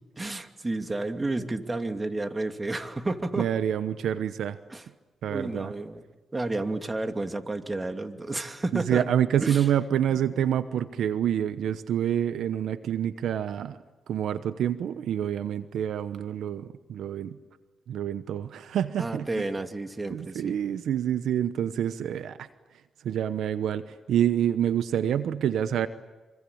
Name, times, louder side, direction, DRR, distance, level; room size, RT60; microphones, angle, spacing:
voice 1, 0.2-3.5 4.7-4.9 5.3-6.0 6.3-9.0 9.4-9.7 10.1-10.4 19.0-20.6, right 2 dB, 25° right, 6 dB, 2.6 m, -31 dB
voice 2, 3.4-4.6 5.2-5.7 8.7-13.8 14.1-17.4 17.9-19.4 20.1-22.5 23.0-25.9, right 10 dB, 80° right, 12 dB, 1.0 m, -27 dB
26.5 x 25.5 x 8.7 m, 1.2 s
cardioid pair, 65°, 0 cm